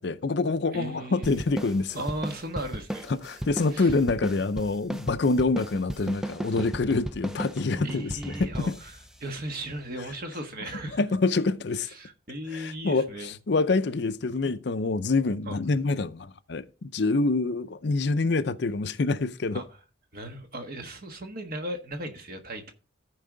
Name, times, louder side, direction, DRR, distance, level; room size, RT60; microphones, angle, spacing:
voice 1, 0.0-2.0 3.1-8.8 11.0-11.9 12.5-19.6, left 3 dB, 55° left, 0.5 m, -26 dB
voice 2, 0.7-1.4 1.9-3.1 3.7-3.9 7.8-11.0 11.8-13.3 15.5-15.6 19.5-19.6 20.1-22.7, right 1 dB, 45° right, 1.4 m, -36 dB
sound 1, 1.2-10.1, right 1 dB, 5° right, 0.4 m, -36 dB
14.0 x 4.8 x 3.8 m
head